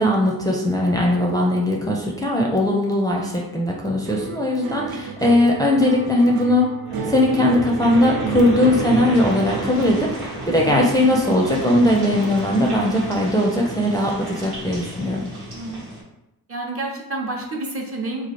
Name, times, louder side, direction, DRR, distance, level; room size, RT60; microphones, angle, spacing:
voice 1, 0.0-6.7 7.1-15.3, left 1 dB, 10° left, -2 dB, 0.5 m, -19 dB
sound 1, 4.0-12.5 12.8-13.5, right 6 dB, 65° right, 0.5 m, -33 dB
sound 2, 6.9-16.0, right 1 dB, 90° right, 1.2 m, -31 dB
voice 2, 10.5-10.8 15.5-16.0 16.5-18.3, right 2 dB, 35° right, -1 dB, 0.8 m, -30 dB
3.1 x 2.4 x 4.2 m, 0.90 s
cardioid pair, 70°, 38 cm